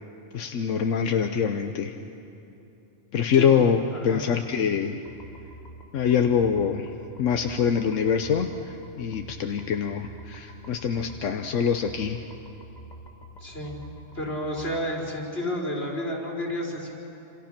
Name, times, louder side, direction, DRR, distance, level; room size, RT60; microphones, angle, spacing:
voice 1, 0.3-1.9 3.1-5.0 5.9-6.9 7.2-12.2, left 7 dB, 90° left, 5 dB, 1.2 m, -24 dB
sound 1, 5.1-14.7, right 1 dB, 35° left, 2.0 m, -46 dB
voice 2, 13.4-13.8 14.1-17.0, left 1 dB, 55° left, -2 dB, 4.6 m, -31 dB
28.0 x 27.5 x 6.0 m, 2.8 s
omnidirectional pair, 1.3 m